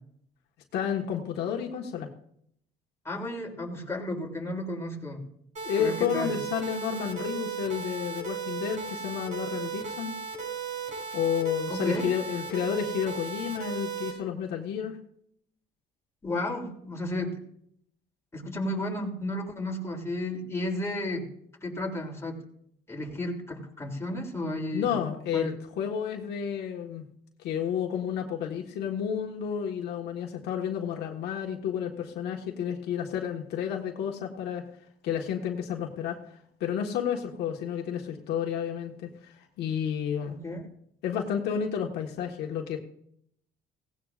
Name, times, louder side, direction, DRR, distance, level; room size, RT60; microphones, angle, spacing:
voice 1, 0.7-2.1 5.6-10.2 11.1-15.0 24.7-27.0 27.4-34.6 35.0-36.2 36.6-40.4 41.0-42.8, left 8 dB, 80° left, 1 dB, 1.6 m, -31 dB
voice 2, 3.0-5.2 5.7-6.4 11.7-12.1 16.2-17.4 18.3-21.3 21.6-22.4 22.9-25.0 25.3-25.5 40.3-40.6, left 1 dB, 15° left, -1 dB, 3.1 m, -33 dB
sound 1, 5.6-14.1, right 6 dB, 45° right, 6.8 m, -36 dB
17.5 x 16.0 x 2.5 m, 0.70 s
cardioid pair, 110°, 17 cm